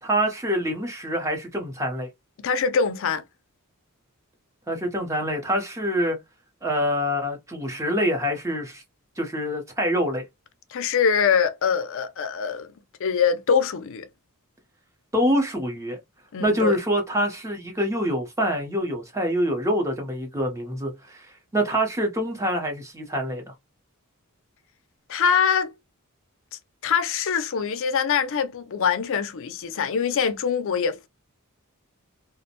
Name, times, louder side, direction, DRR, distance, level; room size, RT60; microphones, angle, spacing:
voice 1, 0.0-2.1 4.7-6.2 6.6-8.8 9.2-10.2 15.1-16.0 16.4-21.3 21.5-23.5, equal, 15° right, 0.7 m, -25 dB
voice 2, 2.4-3.2 10.7-12.7 13.0-14.1 16.3-16.8 25.1-25.7 26.8-31.1, left 6 dB, 60° left, 0.4 m, -23 dB
2.5 x 2.1 x 2.7 m
head